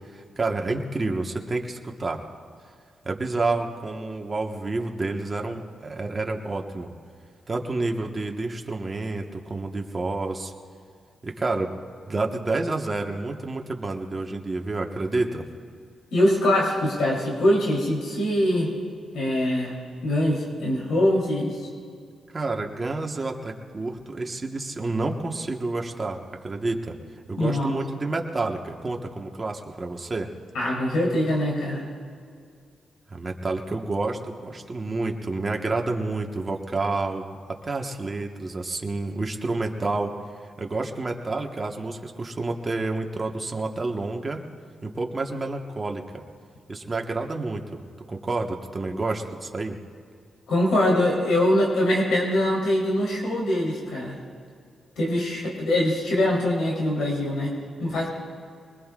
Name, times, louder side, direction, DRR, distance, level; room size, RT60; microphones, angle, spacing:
voice 1, 0.1-2.2 3.0-6.9 7.5-10.5 11.2-11.7 12.1-15.4 22.3-26.9 27.3-30.3 33.1-37.4 37.6-40.1 40.6-44.4 44.8-46.2 46.7-47.8 48.1-49.8, right 3 dB, 30° right, 2 dB, 1.5 m, -29 dB
voice 2, 16.1-18.7 19.1-19.8 20.0-21.6 27.4-27.7 30.5-31.8 50.5-54.2 55.0-57.5 57.8-58.1, left 1 dB, 85° left, -4 dB, 3.6 m, -23 dB
23.0 x 20.0 x 2.5 m, 2.2 s
cardioid pair, 75°, 0 cm